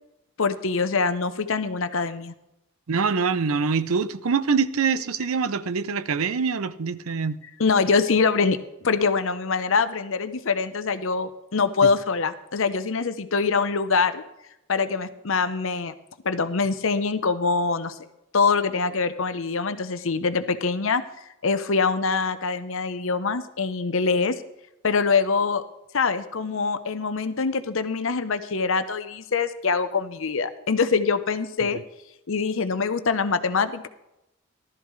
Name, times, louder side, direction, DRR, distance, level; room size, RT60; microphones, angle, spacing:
voice 1, 0.4-2.3 7.6-14.2 14.7-15.9 16.2-18.0 18.3-21.0 21.4-24.4 24.8-25.6 25.9-31.8 32.3-33.9, left 4 dB, 65° left, 11 dB, 0.8 m, -24 dB
voice 2, 2.9-7.4, right 5 dB, 75° right, 14 dB, 0.6 m, -24 dB
15.0 x 12.5 x 3.2 m, 0.88 s
head